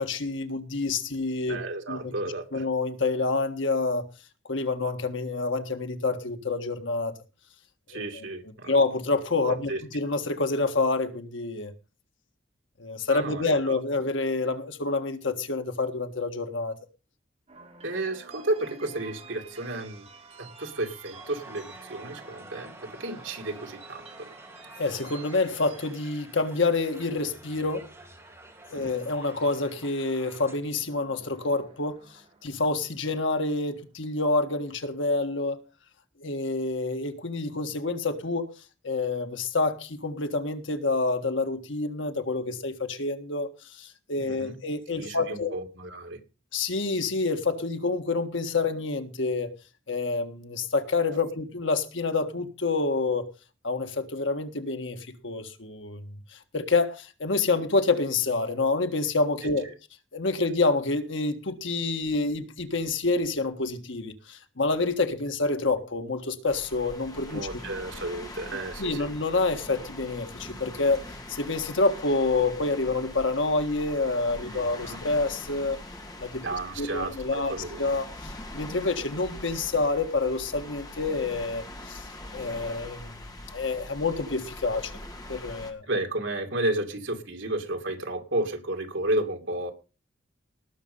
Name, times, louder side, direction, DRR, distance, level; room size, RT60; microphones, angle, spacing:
voice 1, 0.0-1.6 1.9-2.1 2.5-4.1 4.5-7.1 7.9-8.2 8.7-11.7 12.8-16.7 24.8-27.9 28.7-32.0 32.4-35.6 36.2-38.5 38.8-45.6 46.5-49.5 49.9-53.3 53.6-59.7 60.1-67.5 68.8-71.0 71.3-75.8 76.2-76.4 76.8-82.1 82.3-83.2 83.5-84.9 85.3-85.8, left 3 dB, 80° left, 1.6 m, -28 dB
voice 2, 1.5-2.6 7.9-8.8 9.7-9.8 13.1-13.8 17.8-20.1 20.4-24.0 28.7-28.9 44.2-44.5 44.9-46.2 67.3-69.1 74.4-75.0 76.4-77.8 85.8-89.7, right 2 dB, 80° right, 2.5 m, -32 dB
sound 1, 17.5-33.7, right 4 dB, 35° right, 4.1 m, -52 dB
Crowd, 21.1-30.6, right 2 dB, 15° right, 3.1 m, -49 dB
sound 2, 66.5-85.7, left 1 dB, 20° left, 2.3 m, -43 dB
18.5 x 6.6 x 5.5 m
head